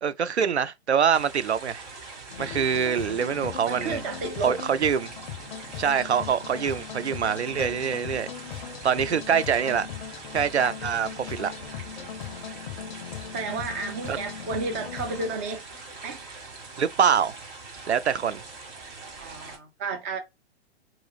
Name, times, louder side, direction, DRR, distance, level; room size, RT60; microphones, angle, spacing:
voice 1, 0.0-1.8 2.4-4.0 4.4-5.1 5.8-8.3 8.8-9.9 10.3-11.5 14.1-14.2 16.8-17.4 17.9-18.4, right 7 dB, 80° right, 0.5 m, -24 dB
sound 1, 1.1-19.6, right 3 dB, 40° right, 1.6 m, -43 dB
sound 2, 2.3-15.4, left 9 dB, 45° left, 0.5 m, -39 dB
voice 2, 3.7-4.6 12.6-12.8 13.3-15.6 16.0-16.2 19.2-20.2, right 3 dB, 15° right, 0.3 m, -32 dB
4.9 x 3.0 x 2.4 m
figure-of-eight pair, 115°, 33 cm